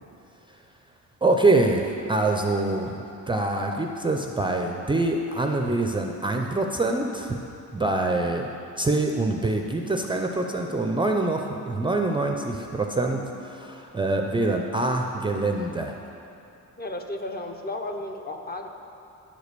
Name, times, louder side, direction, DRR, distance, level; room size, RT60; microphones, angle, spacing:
voice 1, 1.2-7.4 7.7-8.5 8.8-15.9, right 2 dB, 15° right, 2 dB, 0.4 m, -25 dB
voice 2, 16.8-18.7, left 1 dB, 30° left, 4 dB, 0.7 m, -33 dB
10.0 x 5.0 x 6.6 m, 2.8 s
cardioid pair, 140°, 32 cm